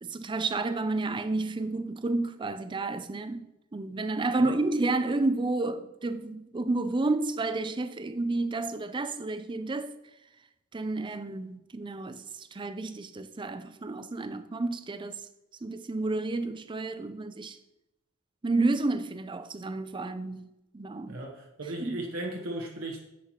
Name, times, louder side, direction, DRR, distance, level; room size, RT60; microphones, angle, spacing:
voice 1, 0.0-9.9 10.7-15.2 15.6-17.6 18.4-21.2 21.8-22.0, right 2 dB, 20° right, 0.4 m, -31 dB
voice 2, 21.1-23.0, right 1 dB, 65° right, 1.0 m, -36 dB
10.0 x 7.5 x 3.0 m
head